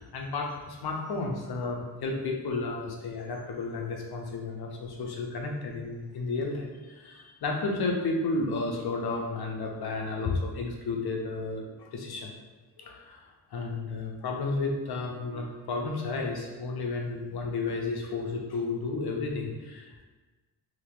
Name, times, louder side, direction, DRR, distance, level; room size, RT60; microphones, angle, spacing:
voice 1, 0.0-12.3 12.8-13.2 13.5-20.0, left 3 dB, 70° left, 0 dB, 0.8 m, -32 dB
2.9 x 2.8 x 3.7 m, 1.3 s
cardioid pair, 90°, 39 cm